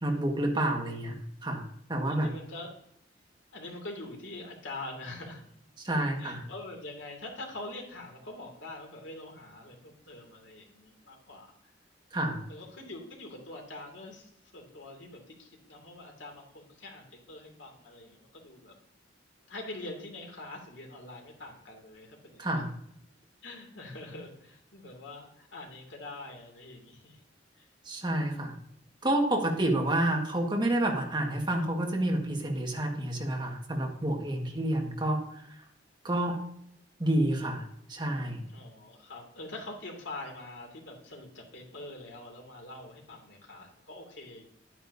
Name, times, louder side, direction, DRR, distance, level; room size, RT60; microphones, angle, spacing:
voice 1, 0.0-1.6 1.9-2.3 5.8-6.4 12.1-12.4 22.4-22.7 27.8-28.5 29.0-35.4 36.0-36.4 37.0-37.6 37.9-38.4, right 1 dB, 25° right, 1 dB, 1.6 m, -29 dB
voice 2, 2.1-2.7 3.5-5.4 6.2-11.7 12.5-18.7 19.5-22.6 23.4-27.2 27.6-27.7 38.5-44.4, left 2 dB, 75° left, 1 dB, 2.5 m, -44 dB
10.0 x 9.1 x 2.7 m, 0.72 s
head